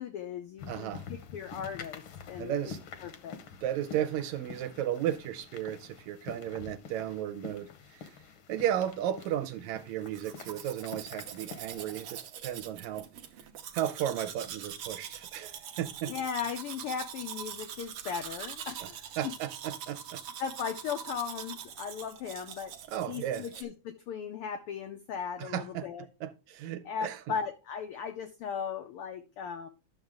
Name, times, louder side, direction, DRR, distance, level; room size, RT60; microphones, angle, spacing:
voice 1, 0.0-2.7 3.0-3.4 16.1-19.3 20.4-22.8 23.1-26.1 26.8-29.7, left 7 dB, 80° left, 1.2 m, -37 dB
sound 1, 0.6-12.0, left 6 dB, 65° left, 1.4 m, -47 dB
voice 2, 0.7-1.1 2.4-2.8 3.6-8.1 8.5-13.1 13.7-16.1 19.2-20.2 22.9-23.5 25.4-25.9 26.2-27.2, right 11 dB, 80° right, 2.1 m, -34 dB
Domestic sounds home sounds, 10.0-23.6, right 9 dB, 65° right, 1.6 m, -43 dB
11.0 x 6.5 x 3.6 m
omnidirectional pair, 3.3 m